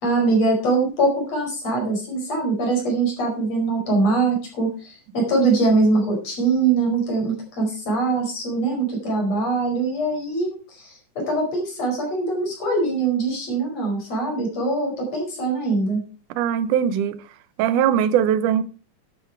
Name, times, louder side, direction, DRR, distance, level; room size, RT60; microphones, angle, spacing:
voice 1, 0.0-16.0, right 3 dB, 55° left, 6.0 m, -22 dB
voice 2, 16.4-17.2 17.6-18.6, right 9 dB, 90° right, 2.4 m, -20 dB
12.0 x 9.1 x 4.6 m
omnidirectional pair, 3.5 m